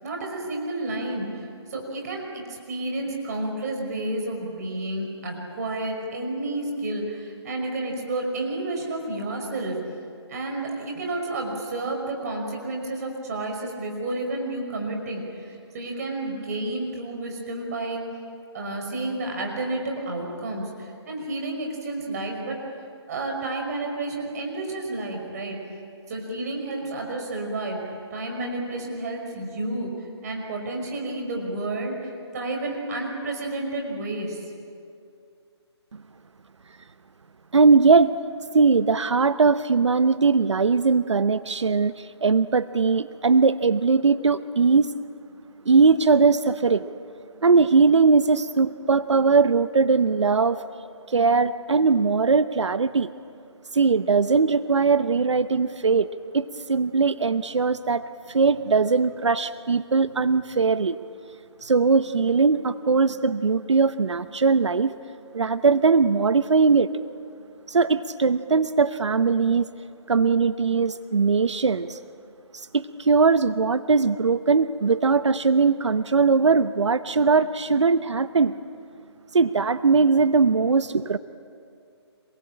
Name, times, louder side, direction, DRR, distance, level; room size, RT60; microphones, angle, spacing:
voice 1, 0.0-9.8 10.3-18.1 18.5-22.6 23.1-25.6 26.1-27.8 28.1-29.9 30.2-34.4, right 2 dB, 35° right, 1 dB, 5.6 m, -31 dB
voice 2, 37.5-38.1 38.5-44.9 45.7-46.9 47.4-50.6 51.1-53.1 53.7-56.1 56.3-61.0 61.6-64.9 65.3-66.9 67.7-69.7 70.1-72.0 72.7-78.5 79.3-81.2, right 4 dB, 85° right, 13 dB, 0.9 m, -20 dB
26.5 x 21.5 x 8.9 m, 2.4 s
hypercardioid pair, 160°, 15 cm